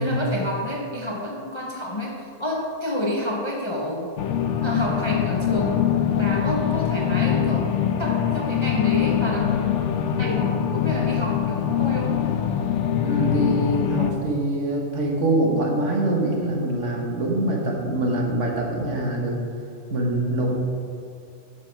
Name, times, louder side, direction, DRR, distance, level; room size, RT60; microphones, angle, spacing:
voice 1, 0.0-4.1 4.6-7.7 8.0-9.4 10.2-12.3, left 1 dB, 30° left, -1 dB, 0.6 m, -29 dB
sound 1, 4.2-14.1, left 9 dB, 75° left, 0.9 m, -23 dB
voice 2, 13.0-19.4 19.9-20.5, right 1 dB, 80° right, -1 dB, 1.7 m, -24 dB
9.0 x 6.3 x 4.6 m, 2.5 s
omnidirectional pair, 1.2 m